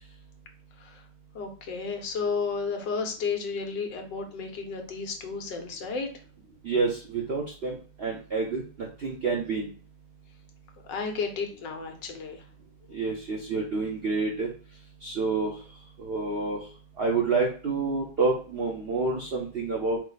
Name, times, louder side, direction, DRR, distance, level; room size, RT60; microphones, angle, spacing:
voice 1, 1.3-6.1 10.9-12.4, left 5 dB, 70° left, 4 dB, 1.5 m, -32 dB
voice 2, 6.6-8.6 9.0-9.7 12.9-14.5 15.0-15.5 16.0-16.6 17.0-20.0, right 4 dB, 80° right, -2 dB, 0.5 m, -28 dB
4.8 x 2.1 x 3.9 m, 0.40 s
omnidirectional pair, 2.1 m